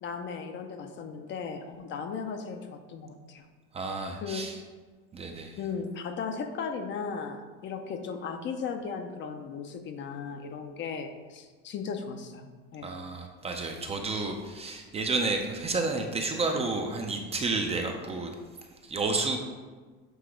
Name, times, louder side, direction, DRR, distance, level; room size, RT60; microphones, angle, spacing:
voice 1, 0.0-3.5 4.2-4.4 5.6-12.9, left 5 dB, 40° left, 6 dB, 0.6 m, -36 dB
voice 2, 3.7-4.6 5.1-5.6 12.8-18.3 18.8-19.4, right 3 dB, 20° right, 3 dB, 0.5 m, -31 dB
7.7 x 2.9 x 4.9 m, 1.4 s
cardioid pair, 135°, 30 cm